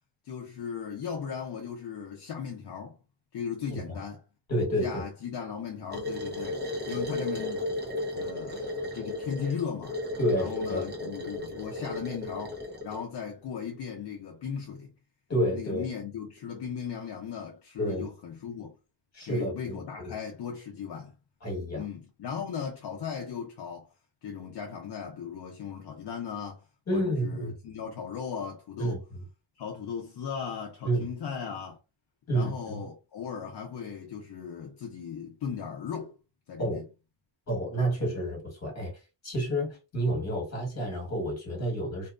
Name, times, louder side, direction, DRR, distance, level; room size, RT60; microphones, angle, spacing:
voice 1, 0.2-3.0 3.3-4.2 4.8-7.7 8.1-10.0 10.3-14.9 15.5-18.8 19.2-21.1 21.8-23.9 24.2-26.6 26.9-29.0 29.6-31.8 32.3-36.1 36.5-36.9, left 7 dB, 65° left, 0.6 m, -37 dB
voice 2, 4.5-5.0 10.2-10.9 15.3-15.9 17.8-18.1 19.1-20.2 21.4-21.8 26.9-27.5 28.8-29.2 30.8-31.1 32.3-32.8 36.6-36.8 37.5-38.9 39.2-42.1, equal, 35° left, 1.3 m, -30 dB
sound 1, 5.9-13.0, left 1 dB, 25° right, 0.7 m, -35 dB
2.7 x 2.2 x 2.4 m
wide cardioid pair, 155°, 44 cm